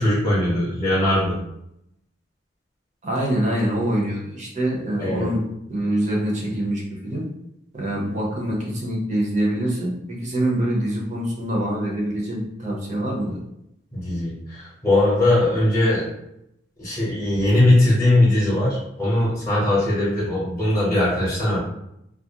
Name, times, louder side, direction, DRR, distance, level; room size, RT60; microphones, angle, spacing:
voice 1, 0.0-1.4 5.0-5.3 13.9-16.1 16.8-21.6, left 1 dB, 20° left, -7 dB, 0.8 m, -20 dB
voice 2, 3.0-5.4 5.7-7.3 7.7-13.4, right 1 dB, 40° right, -3 dB, 0.7 m, -25 dB
2.4 x 2.0 x 2.8 m, 0.80 s
head